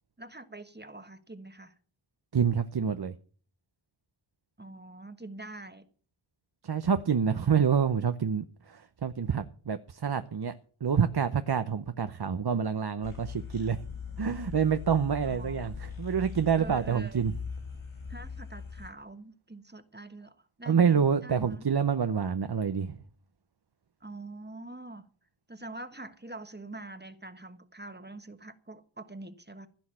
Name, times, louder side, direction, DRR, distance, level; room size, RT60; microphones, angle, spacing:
voice 1, 0.2-1.7 4.6-5.9 15.2-15.8 16.5-17.4 18.1-21.6 24.0-25.1 25.5-29.7, right 2 dB, 20° right, 1.3 m, -45 dB
voice 2, 2.3-3.1 6.6-10.5 10.8-13.8 14.2-17.3 20.7-23.0, right 7 dB, 50° right, 0.8 m, -27 dB
sound 1, 13.0-18.9, left 6 dB, 70° left, 5.6 m, -41 dB
16.0 x 6.3 x 8.8 m
wide cardioid pair, 80°, 49 cm